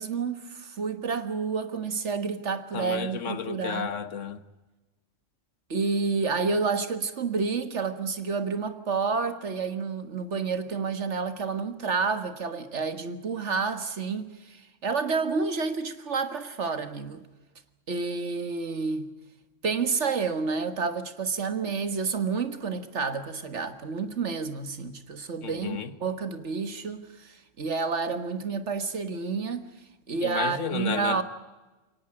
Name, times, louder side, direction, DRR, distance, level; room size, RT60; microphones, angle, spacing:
voice 1, 0.0-3.9 5.7-17.2 17.9-19.1 19.6-29.7 30.1-31.2, right 5 dB, 65° right, 1.9 m, -29 dB
voice 2, 2.7-4.4 25.4-25.9 30.2-31.2, left 6 dB, 75° left, 1.6 m, -32 dB
23.0 x 18.5 x 8.8 m
omnidirectional pair, 1.3 m